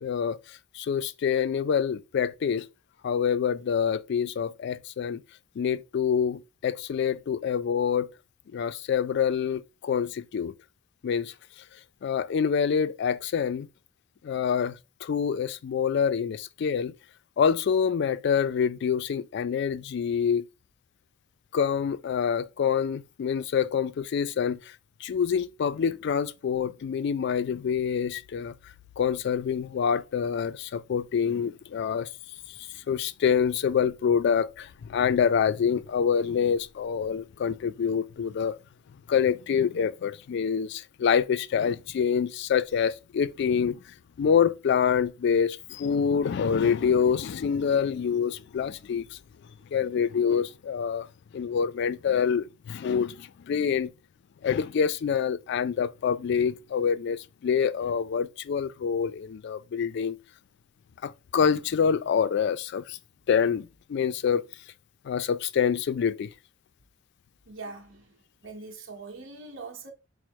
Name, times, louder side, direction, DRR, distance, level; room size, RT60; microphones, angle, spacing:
voice 1, 0.0-2.7 3.0-5.2 5.6-8.1 8.5-10.5 11.0-11.3 12.0-13.7 14.2-16.9 17.4-20.5 21.5-24.6 25.0-28.5 29.0-32.1 32.9-38.6 39.1-43.8 44.2-49.1 49.7-51.1 51.3-53.9 54.4-60.2 61.0-63.0 63.3-64.5 65.1-66.3, left 7 dB, 55° left, 0.3 m, -26 dB
voice 2, 67.5-68.1 68.4-69.9, right 3 dB, 70° right, 0.9 m, -42 dB
5.1 x 2.0 x 4.5 m
head